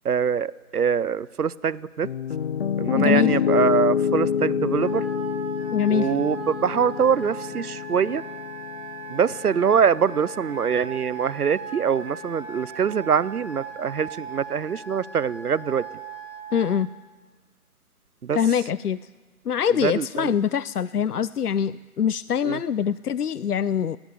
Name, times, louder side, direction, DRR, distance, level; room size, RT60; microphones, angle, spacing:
voice 1, 0.0-2.1 2.8-5.0 5.9-8.2 9.1-15.8 18.2-18.4 19.8-20.3 22.5-22.6, right 7 dB, 80° right, 21 dB, 0.7 m, -24 dB
Piano, 2.0-10.1, left 7 dB, 40° left, 0.8 m, -27 dB
voice 2, 2.9-3.3 5.7-6.1 16.5-16.9 18.3-19.0 19.5-24.0, left 8 dB, 80° left, 19 dB, 0.6 m, -23 dB
Wind instrument woodwind instrument, 4.8-16.8, right 4 dB, 45° right, 5.5 m, -39 dB
20.5 x 17.5 x 8.4 m, 1.4 s
figure-of-eight pair, 140°, 45 cm